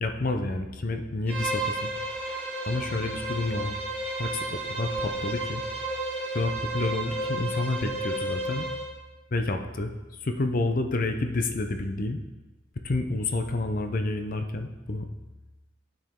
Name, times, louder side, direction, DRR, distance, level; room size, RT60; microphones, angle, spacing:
voice 1, 0.0-1.9 2.7-5.6 6.3-8.7 9.3-9.9 10.2-12.2 12.8-15.1, left 2 dB, 45° left, 6 dB, 0.6 m, -29 dB
Bowed string instrument, 1.3-8.9, right 2 dB, 10° left, 1.7 m, -32 dB
12.0 x 4.9 x 3.7 m, 1.1 s
head